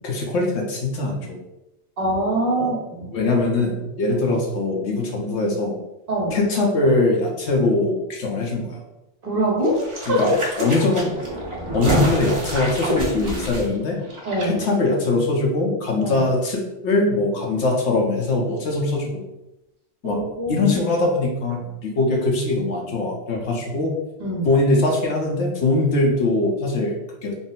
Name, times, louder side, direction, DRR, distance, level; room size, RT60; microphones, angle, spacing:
voice 1, 0.0-1.4 2.5-2.7 3.0-5.8 6.3-8.8 10.1-11.2 11.7-14.0 14.5-19.2 20.0-20.2 20.5-24.0 24.4-26.9 27.2-27.3, left 2 dB, 70° left, 0 dB, 1.0 m, -22 dB
voice 2, 2.0-3.1 6.1-6.4 9.2-10.3 10.6-10.7 11.8-12.0 14.2-14.6 16.0-16.3 20.0-20.7 24.2-24.5, right 1 dB, 50° right, -3 dB, 1.2 m, -24 dB
sound 1, 9.6-14.5 14.7-14.8, right 1 dB, 30° right, 0.7 m, -27 dB
3.7 x 2.0 x 4.0 m, 0.93 s
omnidirectional pair, 1.2 m